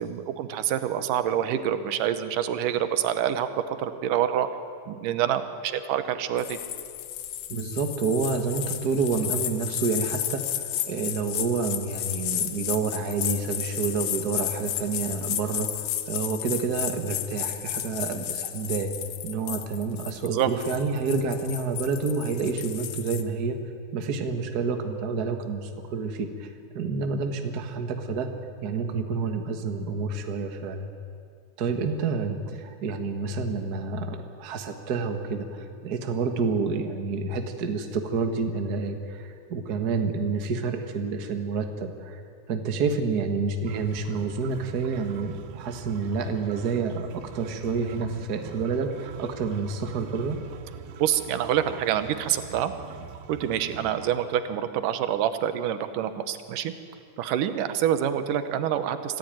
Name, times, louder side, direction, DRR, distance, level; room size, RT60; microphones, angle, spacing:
voice 1, 0.0-3.5 3.8-4.5 4.9-6.6 20.3-20.5 51.0-52.7 53.3-56.7 57.2-59.2, right 10 dB, 85° right, 10 dB, 2.6 m, -26 dB
sound 1, 6.4-23.2, left 12 dB, 70° left, 2.3 m, -32 dB
voice 2, 7.5-18.9 19.2-23.6 23.9-28.3 28.6-30.9 31.6-42.2 42.5-50.4, right 4 dB, 40° right, 6 dB, 1.5 m, -29 dB
sound 2, 43.6-54.1, right 7 dB, 65° right, 2.0 m, -44 dB
25.5 x 15.5 x 9.1 m, 2.3 s
omnidirectional pair, 3.7 m